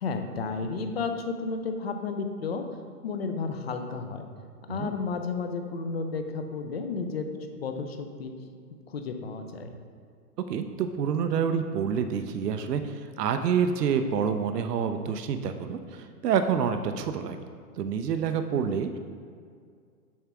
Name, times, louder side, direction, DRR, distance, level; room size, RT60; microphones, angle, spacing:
voice 1, 0.0-2.6 3.0-4.3 4.7-8.3 8.9-9.7, left 4 dB, 40° left, 6 dB, 0.5 m, -32 dB
voice 2, 10.5-17.4 17.8-19.0, right 7 dB, 75° right, 8 dB, 0.7 m, -27 dB
7.2 x 3.5 x 6.0 m, 2.2 s
hypercardioid pair, 165°, 49 cm